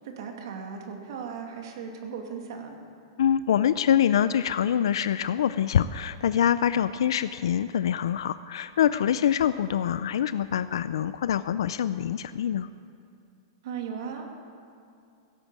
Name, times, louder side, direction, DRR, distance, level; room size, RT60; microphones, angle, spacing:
voice 1, 0.0-2.8 13.6-14.3, right 6 dB, 65° right, 3 dB, 2.3 m, -37 dB
voice 2, 3.2-12.7, left 9 dB, 80° left, 14 dB, 0.4 m, -25 dB
16.5 x 8.9 x 7.5 m, 2.6 s
hypercardioid pair, 140°, 3 cm